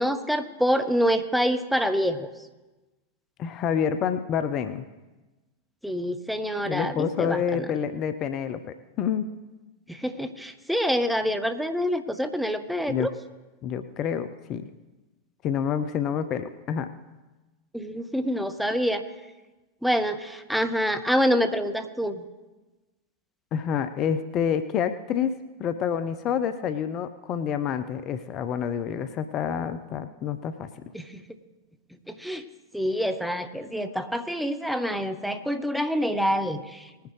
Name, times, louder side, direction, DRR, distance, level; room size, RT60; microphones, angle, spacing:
voice 1, 0.0-2.3 5.8-7.7 9.9-13.1 17.7-19.0 19.8-22.2 30.9-31.2 32.1-32.4 32.7-36.8, equal, ahead, 8 dB, 0.8 m, -26 dB
voice 2, 3.4-4.8 6.7-9.3 12.9-13.1 13.6-14.6 15.4-16.9 23.5-30.7, left 8 dB, 35° left, 11 dB, 0.6 m, -28 dB
19.5 x 10.0 x 3.2 m, 1.1 s
figure-of-eight pair, 90°, 0 cm